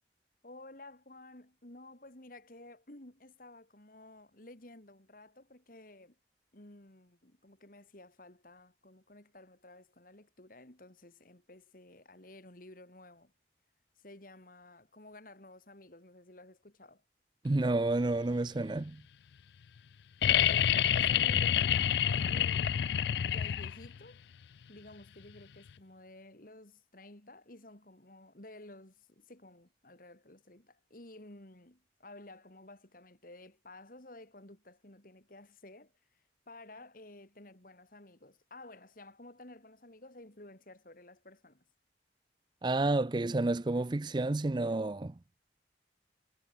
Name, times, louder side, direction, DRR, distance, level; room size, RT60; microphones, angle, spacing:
voice 1, 0.4-6.2 6.5-13.3 14.0-17.0 20.4-24.2 24.7-35.9 36.5-41.6, left 2 dB, 50° left, 2.8 m, -53 dB
voice 2, 17.4-19.0 42.6-45.1, right 2 dB, 25° right, 0.5 m, -30 dB
sound 1, 20.2-24.0 25.7-25.8, left 9 dB, 65° left, 0.4 m, -28 dB
head